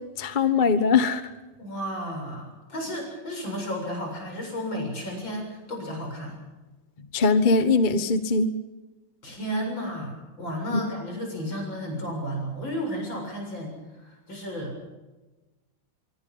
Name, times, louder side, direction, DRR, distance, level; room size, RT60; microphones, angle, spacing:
voice 1, 0.2-1.2 7.1-8.5 10.7-10.8, left 4 dB, 30° left, 10 dB, 1.1 m, -21 dB
voice 2, 1.6-6.4 9.2-14.8, equal, 65° left, 2 dB, 8.1 m, -33 dB
25.0 x 24.5 x 5.6 m, 1.1 s
omnidirectional pair, 2.3 m